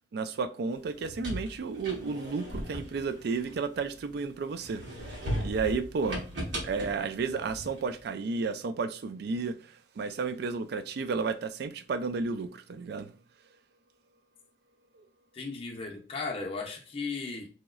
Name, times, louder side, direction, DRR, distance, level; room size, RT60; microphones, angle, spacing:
voice 1, 0.1-4.8 5.4-6.3 6.6-13.1, right 4 dB, 65° right, 0.3 m, -32 dB
sound 1, 0.8-4.1 4.6-8.0, equal, 85° right, 1.4 m, -38 dB
voice 2, 15.3-17.5, left 4 dB, 35° left, 0.6 m, -36 dB
3.0 x 2.8 x 2.4 m
head